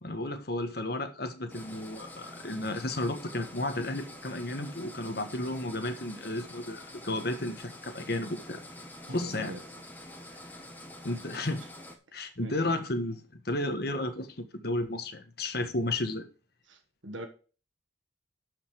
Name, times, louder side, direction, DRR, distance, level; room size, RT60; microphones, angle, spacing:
voice 1, 0.0-8.6 9.1-9.5 11.0-11.6 12.1-16.2, left 1 dB, 55° left, 1.5 m, -33 dB
sound 1, 1.5-12.0, left 1 dB, 10° left, 1.2 m, -47 dB
voice 2, 9.0-9.6 10.3-10.7 12.4-12.5 16.7-17.3, right 1 dB, 85° right, 1.6 m, -43 dB
12.0 x 5.3 x 5.0 m
head